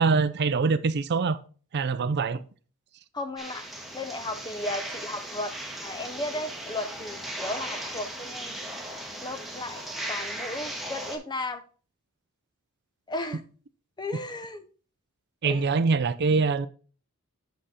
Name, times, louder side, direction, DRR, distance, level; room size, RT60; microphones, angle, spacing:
voice 1, 0.0-1.4 1.7-2.4 15.4-16.7, right 4 dB, 50° right, 0.4 m, -24 dB
voice 2, 3.1-3.7 3.9-5.6 5.8-8.6 9.2-9.8 10.1-11.6 13.1-13.4 14.0-14.6 15.4-15.6, left 2 dB, 20° left, 0.8 m, -35 dB
sound 1, 3.4-11.2, right 1 dB, ahead, 1.7 m, -37 dB
7.6 x 6.3 x 4.2 m
head